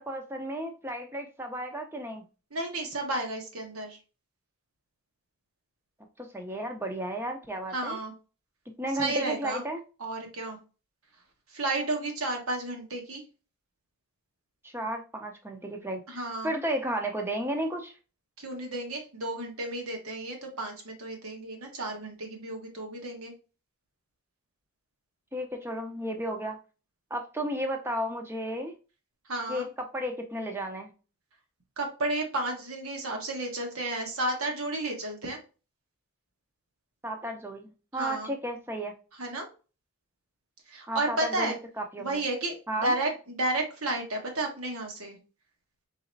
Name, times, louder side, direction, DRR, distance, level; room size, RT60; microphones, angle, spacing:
voice 1, 0.0-2.2 6.2-8.0 8.8-9.8 14.6-17.9 25.3-26.6 27.1-28.7 29.5-30.9 37.0-38.9 40.9-42.2 42.7-42.9, right 1 dB, 10° right, 0.6 m, -33 dB
voice 2, 2.5-4.0 7.7-8.1 9.0-9.6 10.0-10.6 11.5-13.2 16.1-16.5 18.4-23.3 29.3-29.7 31.8-35.4 37.9-38.3 39.2-39.5 40.7-41.6 42.0-45.2, right 2 dB, 75° right, 1.3 m, -32 dB
4.1 x 4.0 x 2.6 m
head